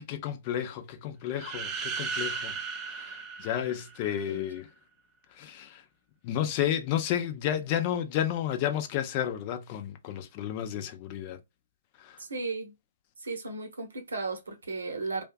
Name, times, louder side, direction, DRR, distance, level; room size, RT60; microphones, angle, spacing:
voice 1, 0.0-2.5 2.9-4.7 5.4-5.8 6.2-11.4 12.0-12.1, left 10 dB, 40° left, 0.5 m, -31 dB
sound 1, 1.3-4.2, right 5 dB, 25° right, 0.5 m, -36 dB
voice 2, 12.2-12.7 13.2-15.2, right 3 dB, 80° right, 0.9 m, -35 dB
2.4 x 2.4 x 2.3 m
hypercardioid pair, 130°, 0 cm